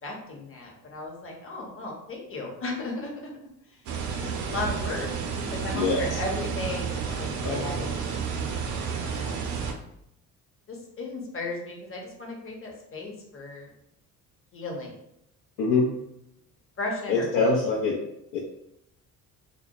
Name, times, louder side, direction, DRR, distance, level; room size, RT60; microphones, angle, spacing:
voice 1, 0.0-3.3 4.2-5.1 5.5-8.1 8.6-9.5 10.7-13.7 14.5-14.9 16.8-17.6, left 2 dB, 30° left, -1 dB, 0.8 m, -35 dB
sound 1, 3.9-9.7, right 6 dB, 45° right, 0.5 m, -31 dB
voice 2, 5.7-6.2 7.4-7.6 15.6-15.9 17.1-18.0 18.3-18.4, left 3 dB, 55° left, -1 dB, 0.5 m, -24 dB
2.1 x 2.0 x 2.8 m, 0.80 s
hypercardioid pair, 55°, 44 cm